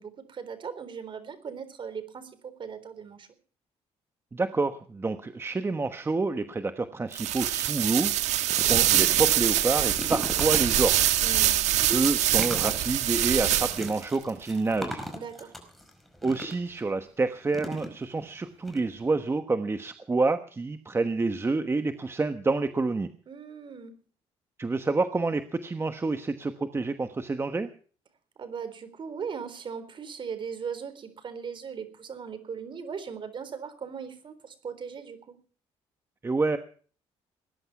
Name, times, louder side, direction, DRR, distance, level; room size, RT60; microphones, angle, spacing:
voice 1, 0.0-3.3 11.2-11.6 15.1-15.5 23.3-24.0 28.4-35.3, right 6 dB, 45° right, 11 dB, 3.9 m, -38 dB
voice 2, 4.3-11.1 11.9-15.1 16.2-23.1 24.6-27.7 36.2-36.6, right 3 dB, 20° right, 9 dB, 1.2 m, -28 dB
sound 1, 7.1-14.0, right 12 dB, 80° right, 1.5 m, -24 dB
sound 2, 7.6-7.7 8.0-16.8 17.5-18.3 18.6-18.8 19.0-19.1, equal, ahead, 5.0 m, -39 dB
20.0 x 11.0 x 6.0 m, 0.43 s
cardioid pair, 105°, 12 cm